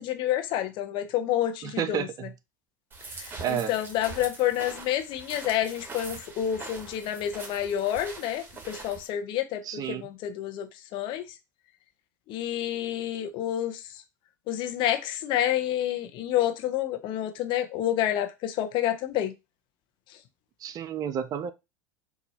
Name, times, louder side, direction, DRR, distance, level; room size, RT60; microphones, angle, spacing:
voice 1, 0.0-2.1 3.1-11.2 12.3-13.8 14.5-19.3, left 11 dB, 50° left, 0.9 m, -29 dB
voice 2, 1.6-2.3 3.4-3.7 9.6-10.1 20.6-21.5, right 9 dB, 35° right, 0.5 m, -31 dB
sound 1, 2.9-9.1, right 3 dB, 20° right, 1.5 m, -43 dB
4.0 x 2.6 x 4.1 m
hypercardioid pair, 85°, 11 cm